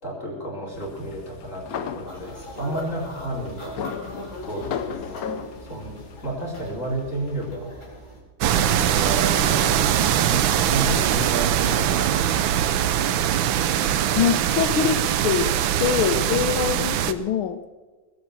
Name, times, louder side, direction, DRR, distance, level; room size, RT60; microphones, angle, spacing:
voice 1, 0.0-3.8 4.5-5.4 5.7-5.9 6.2-7.7 8.4-10.0 10.6-13.0, right 1 dB, 35° left, -4 dB, 4.8 m, -32 dB
sound 1, 0.7-7.5, left 7 dB, 55° left, 1.1 m, -36 dB
sound 2, 2.1-8.2, equal, 15° left, 4.0 m, -41 dB
sound 3, 8.4-17.1, right 10 dB, 70° right, 1.5 m, -22 dB
voice 2, 14.2-15.5 15.8-17.6, left 8 dB, 80° left, 11 dB, 1.8 m, -24 dB
20.0 x 8.3 x 6.7 m, 1.4 s
omnidirectional pair, 2.3 m